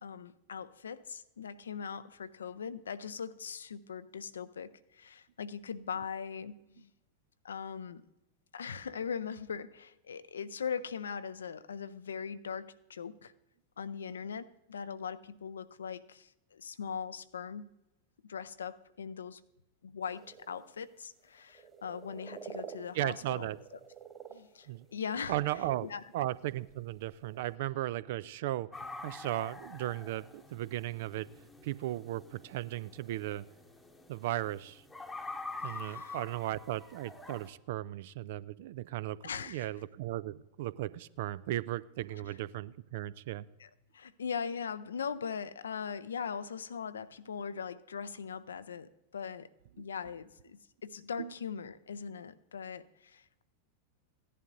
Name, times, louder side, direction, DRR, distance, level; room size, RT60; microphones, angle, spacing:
voice 1, 0.0-6.9 7.4-8.0 8.5-13.3 13.8-17.7 18.2-19.4 19.8-23.5 24.3-25.4 25.8-26.0 35.7-36.2 39.2-39.7 43.6-49.5 49.8-53.4, left 6 dB, 70° left, 15 dB, 0.4 m, -40 dB
sound 1, 20.0-20.9 21.2-26.4 26.7-27.6, right 6 dB, 15° right, 1.5 m, -50 dB
voice 2, 22.9-23.6 24.7-24.9 25.3-25.9 26.1-31.3 31.6-33.5 34.1-34.8 35.6-43.5 49.8-49.9 51.2-51.3, right 15 dB, 50° right, 19 dB, 0.3 m, -36 dB
sound 2, 28.7-37.5, left 3 dB, 10° left, 1.0 m, -46 dB
16.5 x 11.0 x 2.6 m, 0.96 s
figure-of-eight pair, 90°, 0 cm